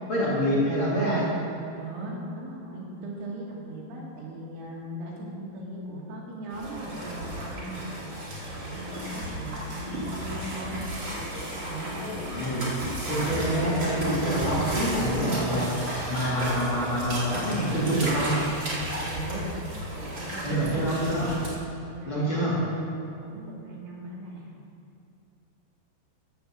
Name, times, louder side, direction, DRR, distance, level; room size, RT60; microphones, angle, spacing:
voice 1, 0.1-1.3 12.4-12.7 13.1-18.4 20.4-21.3 22.1-22.6, right 1 dB, 40° left, -8 dB, 2.2 m, -26 dB
voice 2, 1.7-8.0 8.5-10.8 11.5-12.0 19.0-19.5 19.9-20.9 21.9-22.9 23.2-24.5, right 1 dB, 75° right, -3 dB, 3.7 m, -38 dB
sound 1, 6.5-21.5, right 1 dB, 35° right, 2.3 m, -33 dB
14.0 x 5.4 x 7.1 m, 2.5 s
omnidirectional pair, 4.8 m